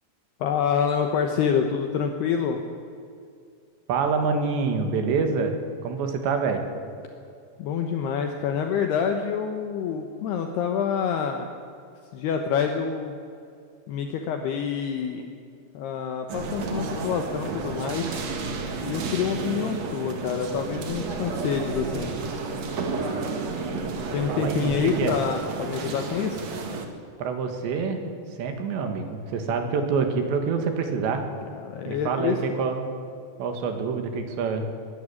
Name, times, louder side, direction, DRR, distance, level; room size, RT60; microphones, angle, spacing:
voice 1, 0.4-2.6 7.6-11.5 12.1-13.1 13.9-15.3 15.7-18.1 18.8-22.2 24.1-26.4 31.5-32.4, left 7 dB, 70° left, 5 dB, 2.8 m, -27 dB
voice 2, 3.9-6.6 24.3-25.2 27.2-28.0 28.4-31.3 31.9-32.9 33.4-34.6, right 5 dB, 70° right, 6 dB, 4.0 m, -26 dB
sound 1, 16.3-26.9, right 4 dB, 50° right, 2.2 m, -31 dB
22.5 x 13.0 x 9.8 m, 2.4 s
omnidirectional pair, 5.4 m